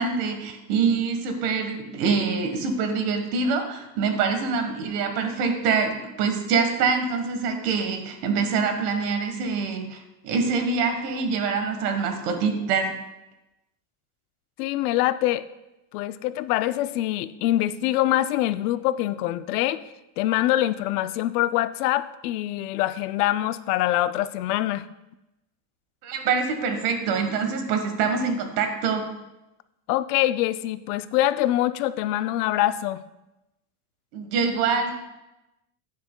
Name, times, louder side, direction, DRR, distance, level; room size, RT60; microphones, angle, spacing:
voice 1, 0.0-12.9 26.0-29.1 34.1-35.0, right 5 dB, 65° right, 6 dB, 1.4 m, -25 dB
voice 2, 14.6-15.5 15.9-19.8 20.2-24.9 29.9-33.0, left 14 dB, 65° left, 14 dB, 0.5 m, -24 dB
10.0 x 9.6 x 2.2 m, 0.96 s
cardioid pair, 180°, 49 cm